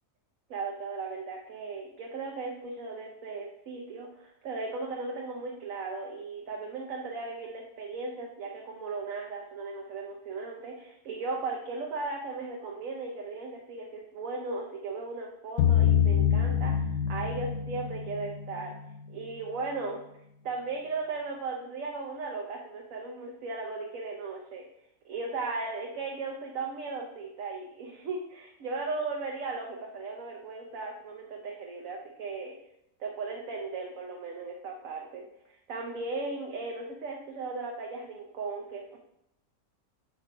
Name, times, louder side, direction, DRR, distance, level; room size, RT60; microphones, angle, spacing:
voice 1, 0.5-18.7 19.1-20.0 20.4-24.6 25.0-32.6 33.0-39.0, right 3 dB, 65° right, 0 dB, 1.1 m, -37 dB
sound 1, 15.6-19.3, left 9 dB, 70° left, 1.0 m, -26 dB
6.0 x 4.5 x 4.5 m, 0.78 s
omnidirectional pair, 1.6 m